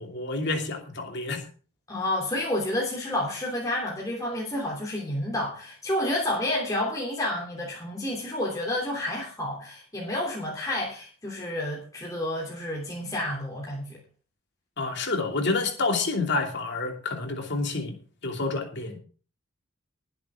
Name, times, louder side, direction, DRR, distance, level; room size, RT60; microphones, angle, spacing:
voice 1, 0.0-1.4 14.8-18.0 18.2-19.0, left 3 dB, 50° left, 3 dB, 2.7 m, -28 dB
voice 2, 1.9-14.0, left 1 dB, 15° left, -3 dB, 3.0 m, -30 dB
21.0 x 7.8 x 3.7 m, 0.40 s
head